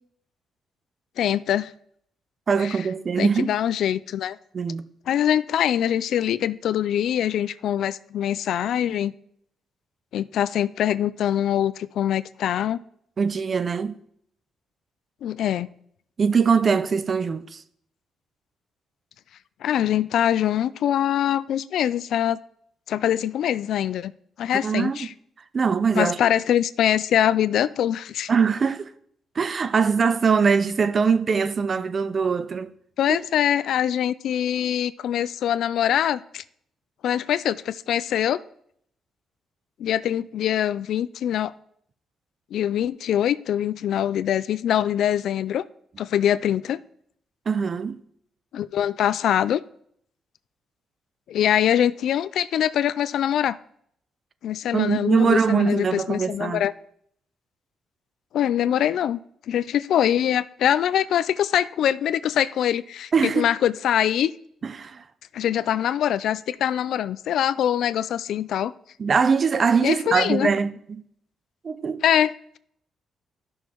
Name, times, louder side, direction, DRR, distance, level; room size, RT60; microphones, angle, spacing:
voice 1, 1.2-1.7 2.6-2.8 3.2-4.4 5.1-9.1 10.1-12.8 15.2-15.7 19.6-22.4 22.9-24.1 24.4-25.1 26.0-28.3 33.0-36.4 37.0-38.4 39.8-41.5 42.5-45.6 46.0-46.8 48.5-49.6 51.3-53.6 54.4-56.7 58.3-59.2 59.5-64.3 65.3-68.7 69.8-70.5 72.0-72.3, left 10 dB, 75° left, 0.3 m, -23 dB
voice 2, 2.5-3.5 4.5-4.8 13.2-14.0 16.2-17.6 24.6-25.1 25.5-26.2 28.3-28.9 29.4-32.7 33.1-33.2 47.5-48.0 54.7-56.6 63.1-63.5 64.6-65.0 69.0-71.0 71.6-72.0, right 5 dB, 40° right, 0.5 m, -22 dB
13.0 x 6.3 x 3.0 m
cardioid pair, 110°, 0 cm